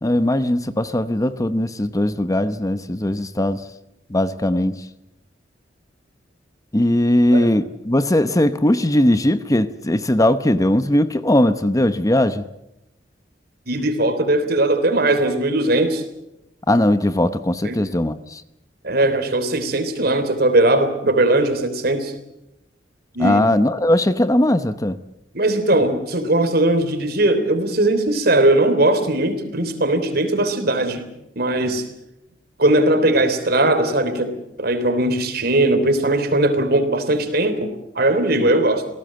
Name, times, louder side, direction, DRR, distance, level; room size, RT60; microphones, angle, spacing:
voice 1, 0.0-3.6 4.1-4.9 6.7-12.4 16.7-18.4 23.2-25.0, left 1 dB, 20° left, 12 dB, 0.9 m, -19 dB
voice 2, 13.7-16.0 17.6-17.8 18.8-22.1 23.1-23.4 25.3-31.1 31.4-31.8 32.6-34.3 34.6-38.9, right 1 dB, 60° right, 9 dB, 3.5 m, -19 dB
28.0 x 18.0 x 7.7 m, 0.89 s
head